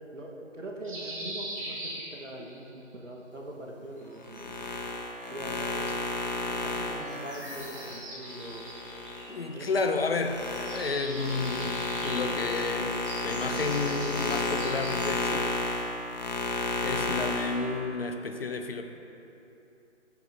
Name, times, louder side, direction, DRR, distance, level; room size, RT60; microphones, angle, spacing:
voice 1, 0.1-4.7 5.3-5.9 6.5-8.6 9.4-9.7, right 1 dB, 80° right, -1 dB, 1.6 m, -42 dB
sound 1, 0.8-2.6 4.0-5.1 7.0-10.0 10.2-15.4, right 1 dB, 25° right, 2.1 m, -42 dB
sound 2, 4.2-9.3 9.7-17.6, left 2 dB, 35° left, 1.2 m, -32 dB
voice 2, 9.3-10.4 10.7-15.5 16.5-18.8, left 3 dB, 55° left, 6 dB, 0.8 m, -31 dB
14.0 x 9.1 x 2.8 m, 2.9 s
figure-of-eight pair, 155°, 37 cm